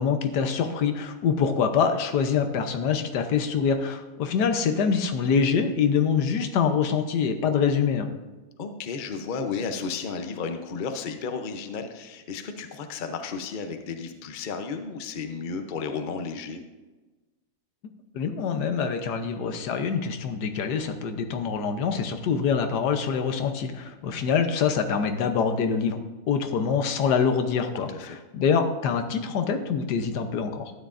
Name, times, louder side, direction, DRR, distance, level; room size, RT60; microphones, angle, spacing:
voice 1, 0.0-8.1 18.1-26.0 26.3-30.7, left 6 dB, 90° left, 7 dB, 1.4 m, -25 dB
voice 2, 8.6-16.6 27.7-28.1, left 5 dB, 45° left, 6 dB, 0.7 m, -33 dB
12.5 x 9.4 x 2.6 m, 1.2 s
omnidirectional pair, 1.7 m